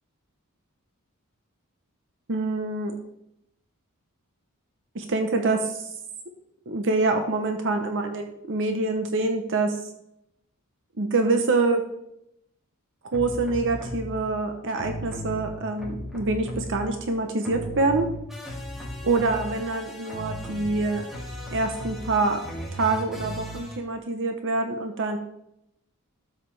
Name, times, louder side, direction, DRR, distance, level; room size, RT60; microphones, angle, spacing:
voice 1, 2.3-2.9 4.9-5.9 6.7-9.8 11.0-11.8 13.1-18.1 19.0-21.1 21.5-22.4 22.7-25.2, right 3 dB, 60° right, 5 dB, 0.8 m, -25 dB
sound 1, 13.1-14.3 14.7-17.2 17.4-23.8, equal, ahead, 2.2 m, -36 dB
12.5 x 7.5 x 3.3 m, 0.80 s
head